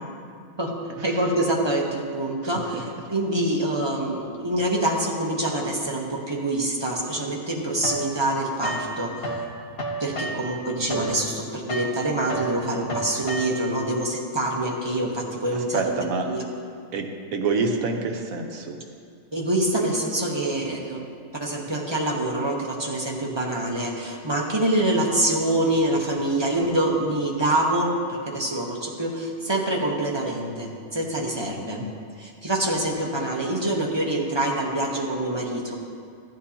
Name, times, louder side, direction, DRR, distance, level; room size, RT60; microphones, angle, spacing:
voice 1, 1.0-9.2 10.0-15.8 16.2-16.4 19.3-21.1 21.4-27.9 28.2-31.8 32.2-35.7, right 1 dB, 20° right, -2 dB, 0.9 m, -25 dB
voice 2, 2.4-2.8 15.5-16.3 16.9-18.8 31.7-31.8, right 4 dB, 70° right, 3 dB, 1.3 m, -27 dB
sound 1, 7.8-9.5 9.8-13.8, right 1 dB, 50° left, 1.3 m, -32 dB
14.0 x 9.1 x 2.8 m, 2.3 s
omnidirectional pair, 1.5 m